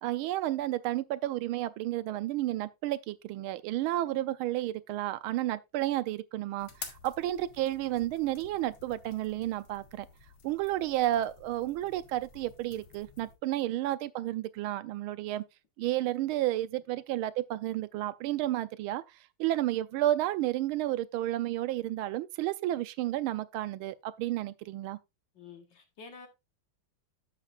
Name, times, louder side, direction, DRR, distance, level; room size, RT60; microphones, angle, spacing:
voice 1, 0.0-10.1 10.4-15.4 15.8-19.0 19.4-25.0, right 14 dB, 85° right, 1.5 m, -31 dB
sound 1, 6.6-13.3, left 6 dB, 90° left, 2.4 m, -51 dB
voice 2, 25.3-26.3, left 4 dB, 60° left, 2.0 m, -49 dB
10.5 x 7.6 x 2.4 m
omnidirectional pair, 2.3 m